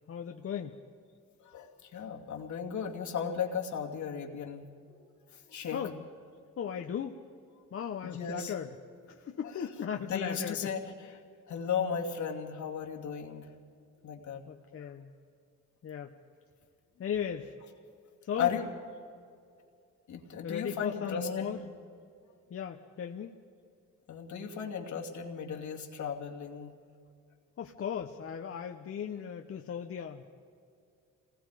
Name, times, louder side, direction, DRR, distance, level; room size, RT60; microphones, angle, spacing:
voice 1, 0.1-0.8 5.7-6.0 6.6-7.2 7.7-8.7 9.1-10.7 14.5-15.1 15.8-16.1 17.0-17.5 18.2-18.5 20.4-21.6 22.5-23.3 27.6-30.3, left 8 dB, 50° left, 4 dB, 1.0 m, -37 dB
voice 2, 1.4-5.0 5.5-5.8 8.0-8.5 9.4-9.7 10.0-10.8 11.5-13.5 14.0-14.4 14.8-14.9 18.4-18.6 20.1-21.7 24.1-26.7, left 7 dB, 70° left, 1 dB, 2.6 m, -35 dB
27.0 x 19.5 x 5.0 m, 2.4 s
cardioid pair, 90°, 30 cm